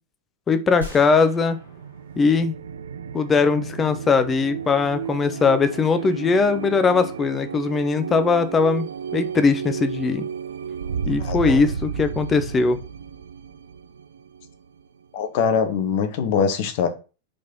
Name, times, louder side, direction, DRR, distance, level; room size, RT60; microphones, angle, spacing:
voice 1, 0.5-1.6 2.2-2.6 3.1-8.9 9.1-10.3 11.1-12.8, left 4 dB, 20° left, 11 dB, 0.6 m, -20 dB
sound 1, 0.8-3.1, left 1 dB, 80° left, 2.1 m, -40 dB
sound 2, 1.6-15.0, right 7 dB, 65° right, 0.4 m, -33 dB
voice 2, 11.2-11.6 15.1-16.9, left 6 dB, 50° left, 8 dB, 1.0 m, -23 dB
5.1 x 4.1 x 5.3 m, 0.33 s
figure-of-eight pair, 90°, 0 cm